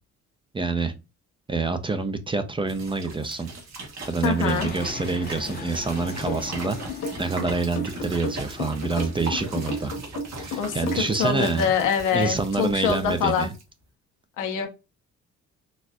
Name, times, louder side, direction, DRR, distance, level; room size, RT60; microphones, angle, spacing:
voice 1, 0.5-0.9 1.5-3.5 4.1-6.8 7.2-9.9 10.4-11.7 12.1-13.5, right 3 dB, 15° right, 9 dB, 0.4 m, -27 dB
sound 1, 2.7-13.6, right 2 dB, 60° right, 1.2 m, -39 dB
voice 2, 4.2-4.7 10.6-13.5 14.4-14.7, left 6 dB, 90° left, 3 dB, 0.9 m, -25 dB
Fixed-wing aircraft airplane, 4.5-9.9, left 5 dB, 30° left, 0.6 m, -40 dB
sound 2, 6.3-11.5, left 2 dB, 60° left, 1.1 m, -32 dB
4.1 x 2.4 x 2.2 m, 0.27 s
cardioid pair, 90°, 30 cm